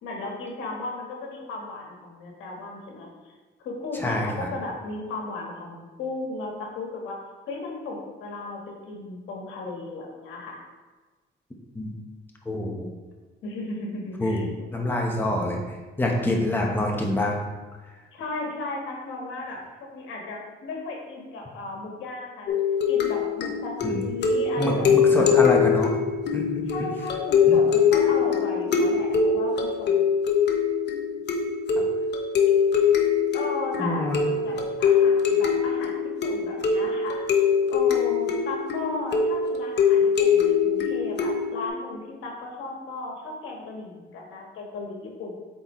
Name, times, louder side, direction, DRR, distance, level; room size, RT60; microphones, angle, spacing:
voice 1, 0.0-3.3 3.6-7.2 7.5-10.6 13.4-14.5 18.1-22.5 22.9-25.6 26.7-30.0 33.3-35.9 36.2-37.2 37.7-45.4, left 2 dB, 85° left, -1 dB, 1.4 m, -35 dB
voice 2, 4.0-4.5 11.7-12.0 12.4-12.8 14.2-14.5 14.7-17.4 23.8-24.0 24.6-25.9 26.3-26.9 27.5-27.6 33.8-34.2 34.5-34.6, left 1 dB, 10° left, -1 dB, 1.1 m, -26 dB
sound 1, 22.5-41.7, left 6 dB, 60° left, 0.9 m, -23 dB
7.6 x 4.3 x 3.1 m, 1.3 s
cardioid pair, 90°, 20 cm